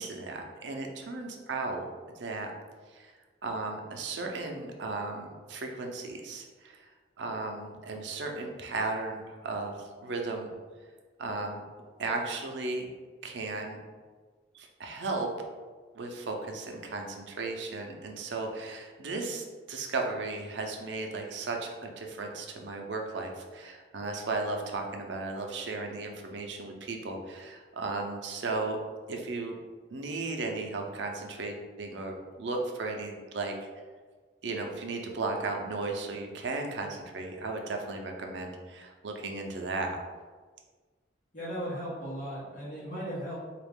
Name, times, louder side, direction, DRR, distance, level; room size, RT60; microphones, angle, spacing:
voice 1, 0.0-1.8 2.2-2.5 2.9-3.1 3.4-6.9 7.2-10.5 11.2-11.6 12.0-12.8 13.2-13.8 14.5-15.3 15.9-28.8 29.1-29.5 29.9-33.5 34.4-40.0, right 3 dB, 70° right, 2 dB, 0.5 m, -35 dB
voice 2, 41.3-43.4, equal, 45° left, -10 dB, 1.2 m, -36 dB
3.8 x 2.4 x 3.5 m, 1.4 s
head